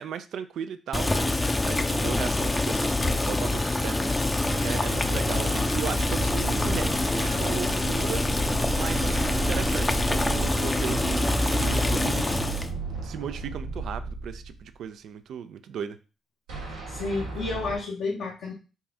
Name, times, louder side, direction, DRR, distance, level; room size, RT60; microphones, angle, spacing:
voice 1, 0.0-8.4 8.7-12.6 13.0-16.0, right 8 dB, 70° right, 11 dB, 0.3 m, -36 dB
Boiling, 0.9-12.7, left 2 dB, 25° left, 0.5 m, -26 dB
sound 1, 4.4-14.7 16.5-17.8, right 3 dB, 90° right, 1.3 m, -33 dB
voice 2, 16.9-18.5, left 3 dB, 70° left, -1 dB, 0.7 m, -31 dB
4.0 x 2.3 x 3.5 m, 0.33 s
hypercardioid pair, 50°, 0 cm